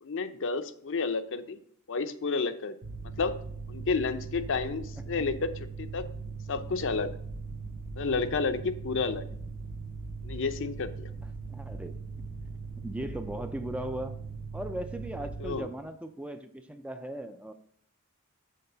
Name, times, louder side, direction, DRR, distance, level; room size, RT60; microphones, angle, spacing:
voice 1, 0.0-1.6 1.9-2.7 3.2-3.4 3.7-6.0 6.5-7.1 8.0-9.2 10.2-11.1 15.4-15.7, left 4 dB, 60° left, 10 dB, 0.6 m, -31 dB
Mechanical fan, 2.8-15.6, right 4 dB, 60° right, 1.3 m, -40 dB
voice 2, 11.5-12.2 12.8-14.2 14.5-17.5, right 1 dB, 5° right, 8 dB, 0.4 m, -38 dB
6.6 x 4.7 x 6.7 m, 0.63 s
head